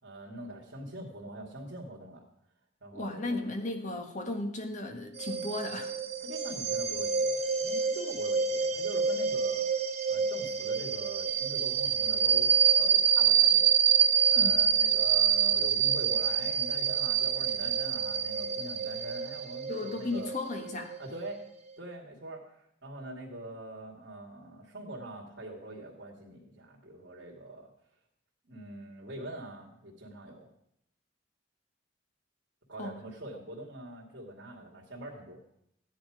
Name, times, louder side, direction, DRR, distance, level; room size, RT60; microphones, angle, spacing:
voice 1, 0.0-2.2 2.8-3.5 6.2-9.7 10.1-13.7 14.3-20.3 21.0-21.4 21.8-27.7 28.4-30.5 32.7-35.4, right 1 dB, 65° right, -4 dB, 2.5 m, -43 dB
voice 2, 2.9-5.9 14.3-14.6 19.7-21.0 32.8-33.0, left 2 dB, 40° left, 4 dB, 1.7 m, -35 dB
sound 1, 5.2-21.4, right 7 dB, 35° right, 1.1 m, -27 dB
15.0 x 10.0 x 5.0 m, 0.77 s
head